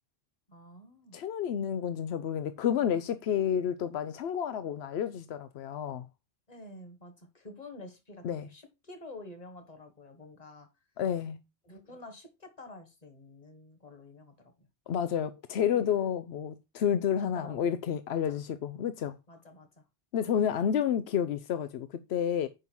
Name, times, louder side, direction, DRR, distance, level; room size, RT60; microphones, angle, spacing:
voice 1, 0.5-1.2 6.5-10.7 11.6-14.7 17.2-17.6 18.1-18.4 19.3-19.8, left 2 dB, 40° left, 1.7 m, -49 dB
voice 2, 1.1-6.1 8.2-8.5 11.0-11.4 14.9-19.2 20.1-22.5, left 8 dB, 90° left, 0.9 m, -30 dB
7.8 x 5.4 x 4.6 m
omnidirectional pair, 1.0 m